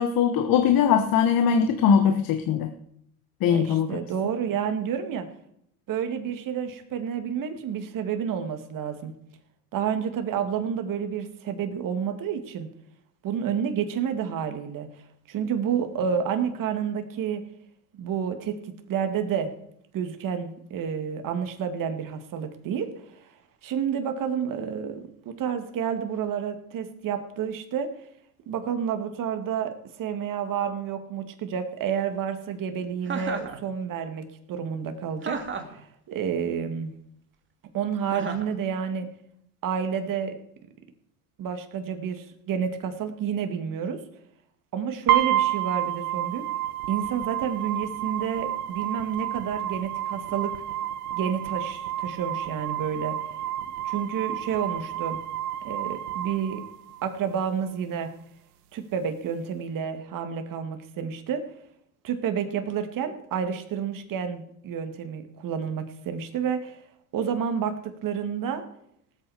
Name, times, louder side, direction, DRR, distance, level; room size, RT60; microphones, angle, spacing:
voice 1, 0.0-2.7 3.4-4.0, left 7 dB, 50° left, 7 dB, 1.3 m, -21 dB
voice 2, 3.4-5.3 5.9-9.1 9.7-12.7 13.2-14.9 15.3-17.4 17.9-18.6 18.9-19.5 19.9-22.9 23.6-25.0 25.3-27.9 28.5-35.4 35.7-36.9 37.7-39.1 39.6-40.4 41.4-44.0 44.7-46.5 46.9-50.5 51.1-53.2 53.8-55.2 55.6-56.6 57.0-58.1 58.7-61.4 62.0-66.8 67.1-68.6, right 7 dB, 45° right, 7 dB, 2.3 m, -29 dB
Chuckle chortle, 33.1-33.6 35.2-35.8 38.1-38.5, right 5 dB, 25° right, 2.3 m, -32 dB
sound 1, 45.1-57.1, right 12 dB, 80° right, 1.5 m, -30 dB
18.5 x 8.5 x 5.0 m, 0.71 s
supercardioid pair, 95°, 45 cm